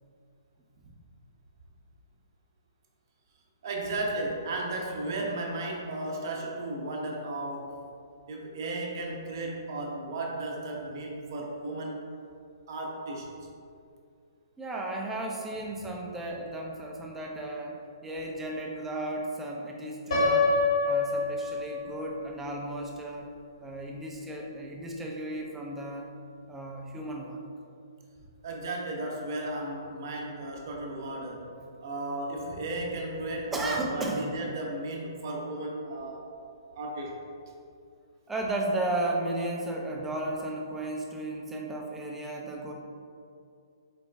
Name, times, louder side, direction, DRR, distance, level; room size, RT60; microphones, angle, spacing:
voice 1, 3.6-7.8 8.3-12.0 12.7-13.3 28.4-31.5 31.8-36.3 36.7-37.2, right 2 dB, 55° right, 0 dB, 0.7 m, -34 dB
voice 2, 14.6-23.3 23.6-26.1 26.5-27.4 33.5-34.3 38.3-42.7, right 1 dB, 10° right, -1 dB, 0.4 m, -34 dB
Piano, 20.1-22.1, left 3 dB, 65° left, 1.5 m, -25 dB
4.1 x 2.3 x 3.3 m, 2.4 s
figure-of-eight pair, 125°, 2 cm